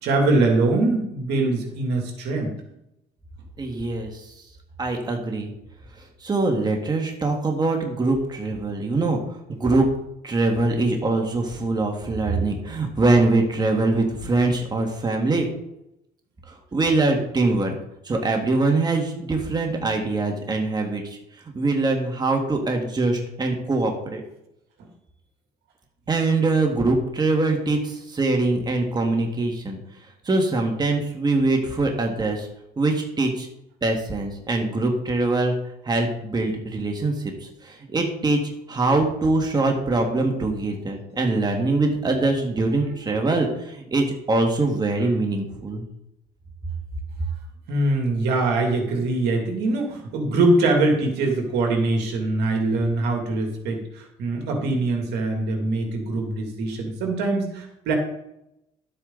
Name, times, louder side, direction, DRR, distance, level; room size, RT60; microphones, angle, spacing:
voice 1, 0.0-2.5 47.7-57.9, right 2 dB, 80° right, 2 dB, 2.7 m, -23 dB
voice 2, 3.6-4.1 4.8-5.5 6.2-9.2 9.6-9.9 10.2-15.5 16.7-17.7 18.1-21.0 21.6-24.2 26.1-29.8 30.3-32.5 32.8-33.5 33.8-35.5 35.9-37.1 37.4-38.4 38.7-45.8, right 2 dB, 25° right, 2 dB, 2.0 m, -23 dB
12.0 x 8.6 x 4.0 m, 0.81 s
cardioid pair, 110°, 17 cm